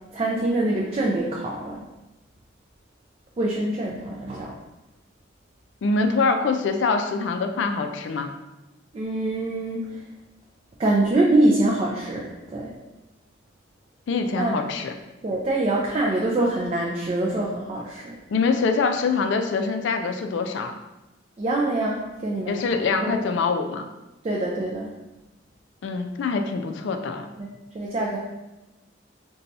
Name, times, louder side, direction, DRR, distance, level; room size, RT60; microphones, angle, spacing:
voice 1, 0.1-1.8 3.4-4.5 8.9-10.0 10.8-12.7 14.3-14.7 15.2-18.2 21.4-22.6 23.0-23.2 24.2-24.9 27.4-27.5 27.7-28.2, right 2 dB, 30° right, -3 dB, 0.3 m, -24 dB
voice 2, 5.8-8.3 14.1-14.9 18.3-20.8 22.5-23.9 25.8-27.3, left 4 dB, 65° left, 6 dB, 0.3 m, -24 dB
2.6 x 2.3 x 4.1 m, 1.0 s
head